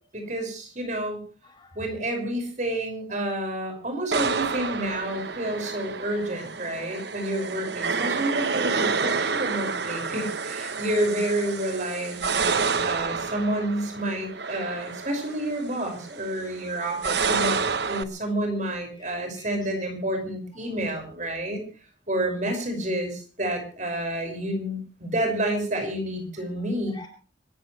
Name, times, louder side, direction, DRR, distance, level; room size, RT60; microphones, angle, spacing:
voice 1, 0.1-1.2 1.7-17.6 17.9-21.6 22.1-27.0, right 1 dB, 40° right, 4 dB, 5.8 m, -29 dB
voice 2, 1.4-1.9 19.0-19.7 20.5-20.7 26.6-27.1, left 2 dB, 25° left, 4 dB, 5.7 m, -50 dB
sound 1, 4.1-18.0, right 5 dB, 60° right, 1.0 m, -29 dB
26.0 x 14.5 x 3.3 m, 0.37 s
head